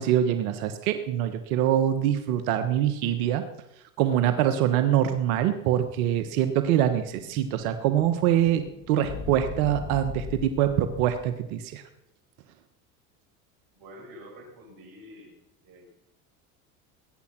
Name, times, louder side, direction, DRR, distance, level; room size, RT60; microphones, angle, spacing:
voice 1, 0.0-3.4 4.0-11.8, right 11 dB, 80° right, 9 dB, 1.4 m, -24 dB
Explosion, 5.7-11.4, left 8 dB, 45° left, 2.1 m, -41 dB
voice 2, 13.7-15.4 15.6-15.9, equal, 55° right, 0 dB, 7.3 m, -47 dB
20.5 x 9.9 x 6.0 m, 0.86 s
supercardioid pair, 90°, 42 cm